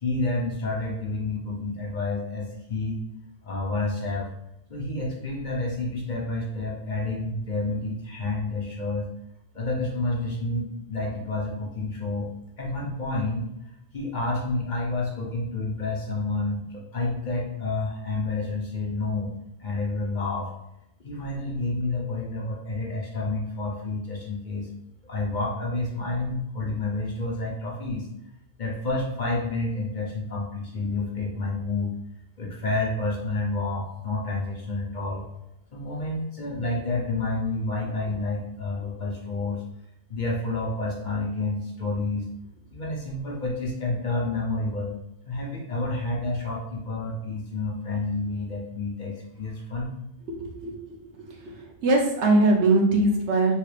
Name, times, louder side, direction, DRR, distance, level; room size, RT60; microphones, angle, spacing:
voice 1, 0.0-3.0 3.4-4.3 4.7-9.1 9.5-12.3 12.6-13.5 13.9-19.3 19.6-20.5 21.0-24.7 25.1-28.1 28.6-31.9 32.4-35.3 35.7-39.6 40.1-42.3 42.7-45.0 45.2-49.9, left 2 dB, 50° left, -3 dB, 0.7 m, -29 dB
voice 2, 50.3-51.6 51.8-53.5, right 2 dB, 80° right, 0 dB, 1.0 m, -22 dB
3.2 x 2.4 x 3.2 m, 0.82 s
omnidirectional pair, 1.2 m